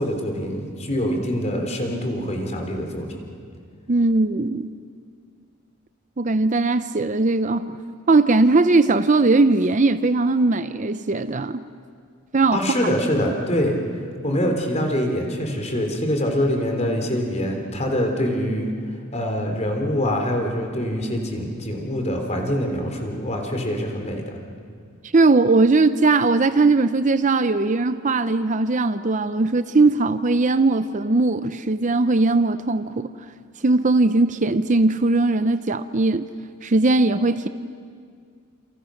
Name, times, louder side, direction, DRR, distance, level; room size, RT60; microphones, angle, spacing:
voice 1, 0.0-3.2 12.5-13.8 14.2-18.7 19.1-24.2, equal, 30° left, 3 dB, 3.8 m, -24 dB
voice 2, 3.9-4.7 6.2-7.8 8.1-11.6 12.3-12.9 25.1-33.1 33.6-36.3 36.6-37.5, right 3 dB, 35° right, 12 dB, 0.6 m, -19 dB
29.5 x 28.5 x 6.5 m, 2.2 s
head